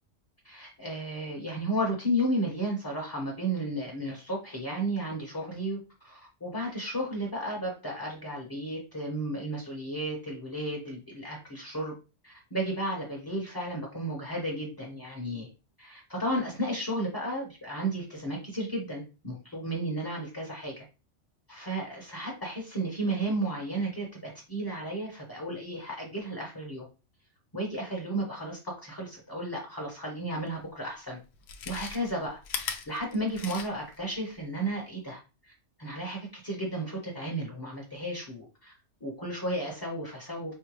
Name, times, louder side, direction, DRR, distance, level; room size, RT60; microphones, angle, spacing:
voice 1, 0.4-5.8 6.0-11.9 12.2-15.5 15.8-20.8 21.5-26.9 27.5-31.2 31.7-35.2 35.8-38.7 39.0-40.5, right 1 dB, 20° left, -1 dB, 0.9 m, -33 dB
Chewing mastication, 30.6-30.7 31.3-34.0 34.3-34.4, left 6 dB, 65° left, 0.8 m, -38 dB
5.4 x 2.2 x 3.0 m, 0.31 s
omnidirectional pair, 1.3 m